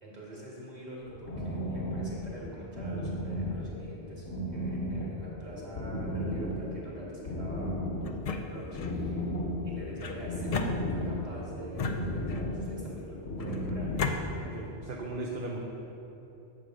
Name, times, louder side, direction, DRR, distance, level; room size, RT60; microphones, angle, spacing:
voice 1, 0.0-7.8 8.3-9.3 9.6-13.9, right 1 dB, 40° right, -6 dB, 1.8 m, -45 dB
sound 1, 1.0-14.6, left 1 dB, 80° left, 1.3 m, -35 dB
sound 2, 8.0-9.0 10.0-11.3 11.8-12.6 13.4-14.2, left 4 dB, 65° left, 0.3 m, -35 dB
voice 2, 14.4-15.6, right 2 dB, 55° right, -1 dB, 0.8 m, -37 dB
7.7 x 3.7 x 6.3 m, 3.0 s
omnidirectional pair, 1.1 m